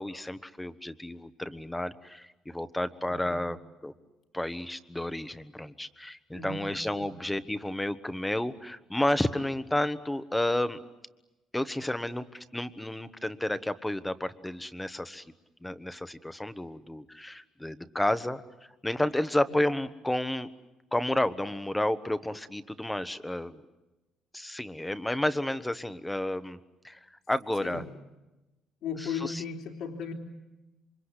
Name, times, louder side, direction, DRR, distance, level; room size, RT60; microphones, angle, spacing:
voice 1, 0.0-3.9 4.3-10.8 11.5-15.2 15.6-18.4 18.8-20.5 20.9-23.6 24.3-26.6 26.8-27.0 27.3-27.8 29.0-29.4, left 1 dB, 5° left, 12 dB, 1.1 m, -31 dB
voice 2, 3.0-3.4 6.3-6.6 7.0-7.1 19.5-19.6 27.6-27.8 28.8-30.1, left 6 dB, 70° left, 2 dB, 3.3 m, -36 dB
28.0 x 25.0 x 8.2 m, 1.0 s
cardioid pair, 130°, 0 cm